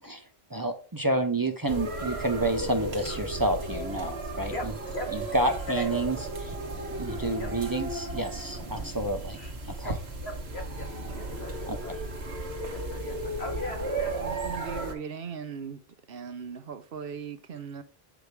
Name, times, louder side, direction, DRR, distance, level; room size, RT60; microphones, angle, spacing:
voice 1, 0.0-4.7 5.1-6.5 7.0-9.4 9.6-9.9 11.7-11.8, right 2 dB, 20° right, 0.7 m, -29 dB
sound 1, 1.7-14.9, right 2 dB, 90° right, 1.6 m, -34 dB
voice 2, 4.2-5.2 5.5-5.8 7.4-7.5 9.3-9.5 9.8-10.0 10.2-10.9 11.1-11.9 12.7-14.1 17.5-17.6, left 2 dB, 85° left, 2.2 m, -39 dB
voice 3, 14.2-15.8 16.1-17.8, right 7 dB, 65° right, 0.9 m, -38 dB
8.2 x 5.1 x 4.7 m
omnidirectional pair, 1.1 m